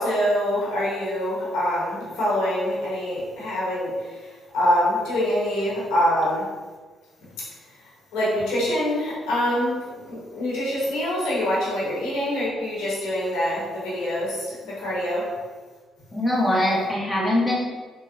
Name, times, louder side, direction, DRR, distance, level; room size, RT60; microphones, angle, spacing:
voice 1, 0.0-4.2 4.5-6.5 8.1-15.3, equal, 75° left, -7 dB, 1.0 m, -25 dB
voice 2, 16.1-17.6, left 1 dB, 5° left, -6 dB, 1.1 m, -22 dB
3.6 x 2.0 x 2.5 m, 1.4 s
hypercardioid pair, 45°, 0 cm